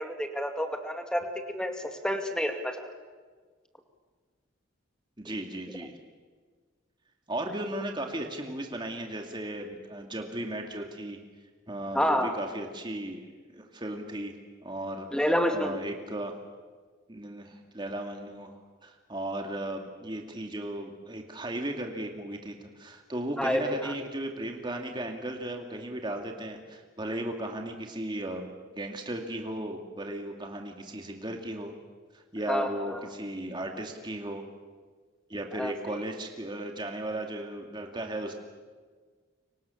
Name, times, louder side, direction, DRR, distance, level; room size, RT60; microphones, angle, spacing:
voice 1, 0.0-2.9 5.3-5.4 11.9-12.3 15.1-15.8 23.4-23.9 32.5-33.0 35.5-36.0, equal, 5° left, 5 dB, 2.3 m, -29 dB
voice 2, 5.2-5.9 7.3-11.2 11.7-14.4 14.6-15.1 15.5-16.3 17.1-31.7 32.1-34.4 35.3-38.3, right 1 dB, 25° right, 3 dB, 2.3 m, -36 dB
29.5 x 25.0 x 7.1 m, 1.5 s
head